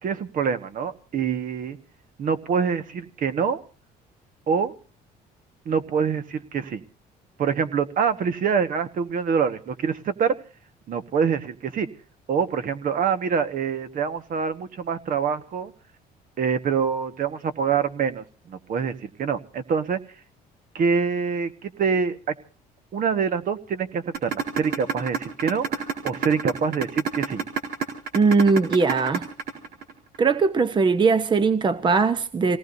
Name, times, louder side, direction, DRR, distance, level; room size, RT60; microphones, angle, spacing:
voice 1, 0.0-1.8 2.2-3.6 4.5-4.7 5.6-6.8 7.4-10.3 10.9-11.9 12.3-15.7 16.4-20.0 20.7-22.3 22.9-27.4, right 6 dB, 55° right, 1.5 m, -25 dB
sound 1, 24.1-30.2, right 6 dB, 70° right, 4.1 m, -27 dB
voice 2, 28.1-29.3 30.2-32.6, right 4 dB, 30° right, 0.9 m, -20 dB
27.5 x 18.5 x 2.7 m
cardioid pair, 110°, 17 cm